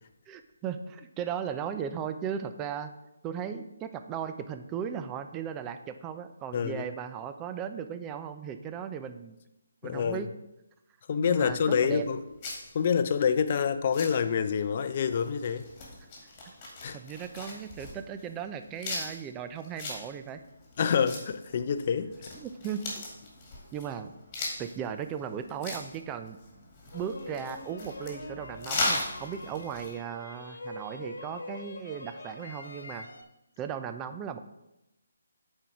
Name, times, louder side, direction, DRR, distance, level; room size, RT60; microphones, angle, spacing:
voice 1, 0.3-2.9 3.2-9.4 9.8-10.3 11.2-12.0 16.9-20.4 22.4-23.0 23.7-24.1 24.6-26.4 26.9-33.1 33.6-34.4, right 8 dB, 15° right, 9 dB, 0.4 m, -37 dB
voice 2, 6.5-6.9 9.8-10.3 11.1-12.2 12.7-15.7 16.8-17.0 20.8-22.1, left 7 dB, 40° left, 11 dB, 0.5 m, -27 dB
sound 1, 11.2-30.0, left 2 dB, 25° left, 2.0 m, -39 dB
sound 2, 26.9-33.2, left 2 dB, 75° left, 1.2 m, -44 dB
7.7 x 4.5 x 4.8 m, 0.91 s
figure-of-eight pair, 155°, 0 cm